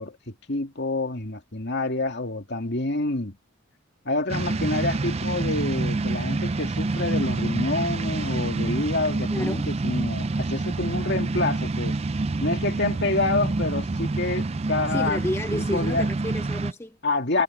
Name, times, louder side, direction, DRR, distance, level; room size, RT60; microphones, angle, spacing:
voice 1, 0.0-3.4 4.0-12.0 12.4-15.2 15.5-16.1 17.0-17.4, left 2 dB, 55° left, 2.3 m, -27 dB
sound 1, 4.3-16.7, right 3 dB, 30° right, 0.4 m, -27 dB
voice 2, 9.3-9.7 14.9-17.0, left 1 dB, 10° left, 0.6 m, -31 dB
head